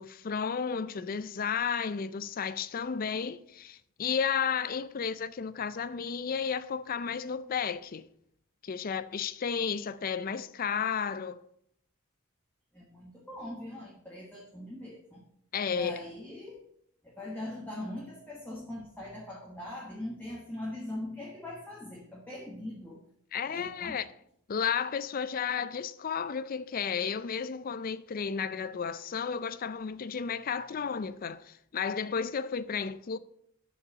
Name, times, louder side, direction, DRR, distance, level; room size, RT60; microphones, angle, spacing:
voice 1, 0.0-8.1 8.6-11.4 15.5-16.0 23.3-24.1 24.5-33.2, left 6 dB, 40° left, 0.4 m, -33 dB
voice 2, 12.7-15.2 15.7-16.6 17.0-23.0 23.5-24.0, left 1 dB, 10° left, 1.3 m, -41 dB
6.6 x 5.4 x 7.0 m
head